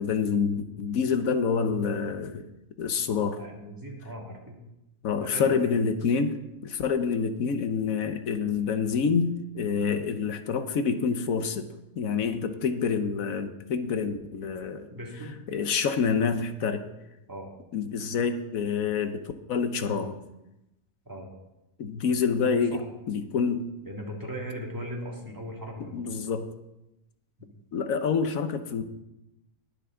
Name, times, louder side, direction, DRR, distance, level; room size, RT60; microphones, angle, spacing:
voice 1, 0.0-2.5 2.8-3.4 5.0-11.7 12.0-14.9 15.5-16.8 17.7-19.2 19.5-20.2 21.8-22.8 23.1-23.7 25.9-26.5 27.7-28.8, left 5 dB, 65° left, 9 dB, 1.2 m, -27 dB
voice 2, 3.4-4.6 5.2-5.8 14.9-15.4 16.7-16.9 17.3-17.5 21.1-21.3 22.7-22.9 23.9-26.2 27.4-27.5, equal, 15° right, -1 dB, 2.1 m, -39 dB
20.0 x 6.8 x 3.8 m, 0.93 s
omnidirectional pair, 1.7 m